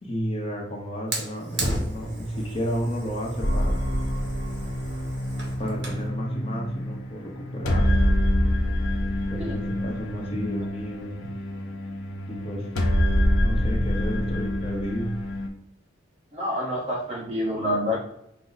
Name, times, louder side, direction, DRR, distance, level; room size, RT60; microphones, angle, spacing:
voice 1, 0.0-3.8 5.6-8.0 9.3-11.3 12.3-12.8 13.4-15.2, equal, 30° left, -1 dB, 0.7 m, -32 dB
Fire, 1.1-6.1, right 1 dB, 55° right, 1.0 m, -34 dB
sound 1, 3.4-15.5, equal, 80° left, 0.7 m, -26 dB
voice 2, 16.3-18.0, left 1 dB, 30° right, -3 dB, 1.1 m, -27 dB
5.1 x 2.0 x 3.9 m, 0.84 s
head